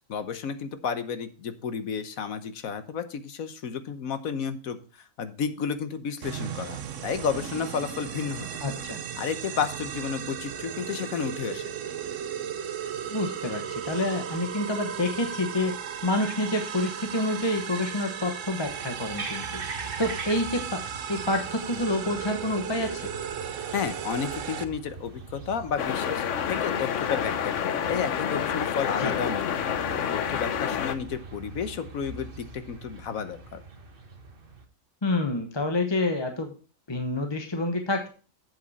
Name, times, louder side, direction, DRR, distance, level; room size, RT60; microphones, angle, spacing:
voice 1, 0.1-8.5 9.2-11.6 23.7-26.2 26.5-29.7 30.3-33.6, left 6 dB, 85° left, 10 dB, 1.4 m, -32 dB
sound 1, 6.2-24.6, right 8 dB, 70° right, 1.1 m, -36 dB
voice 2, 8.6-9.0 13.1-19.6 20.0-23.1 29.0-29.1 35.0-36.5 36.9-38.1, left 2 dB, 20° left, 5 dB, 0.9 m, -28 dB
sound 2, 18.6-34.7, right 3 dB, 45° right, 1.4 m, -42 dB
sound 3, 25.8-30.9, left 8 dB, 65° left, 1.0 m, -28 dB
8.0 x 7.8 x 4.1 m, 0.37 s
omnidirectional pair, 1.4 m